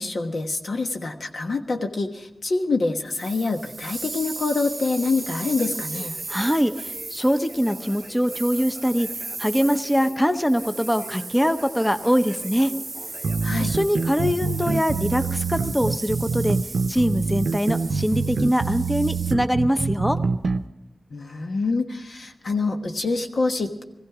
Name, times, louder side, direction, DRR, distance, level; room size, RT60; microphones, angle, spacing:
voice 1, 0.0-6.2 13.4-13.7 21.1-23.8, left 3 dB, 75° left, 4 dB, 1.3 m, -26 dB
sound 1, 3.1-19.3, right 3 dB, 50° right, 0.6 m, -37 dB
Conversation, 4.7-15.2, left 1 dB, 55° left, 2.1 m, -46 dB
voice 2, 6.3-9.1 9.4-12.7 13.6-16.6 16.9-20.2, equal, 10° left, 10 dB, 0.7 m, -23 dB
sound 2, 13.2-20.6, right 4 dB, 90° right, 0.6 m, -25 dB
18.5 x 15.5 x 4.9 m, 0.94 s
wide cardioid pair, 70°, 0 cm